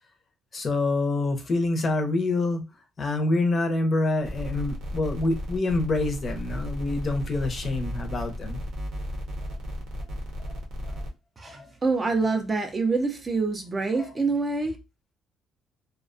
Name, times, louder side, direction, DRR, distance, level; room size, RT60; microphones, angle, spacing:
voice 1, 0.5-2.6 3.0-8.6 9.5-9.6 10.9-11.0 11.4-11.7 14.0-14.1, left 2 dB, 30° left, 0.5 m, -26 dB
sound 1, 4.2-11.1, equal, 70° right, 0.7 m, -34 dB
voice 2, 11.4-14.8, right 3 dB, 25° right, 0.4 m, -26 dB
2.3 x 2.1 x 2.4 m
cardioid pair, 135°, 0 cm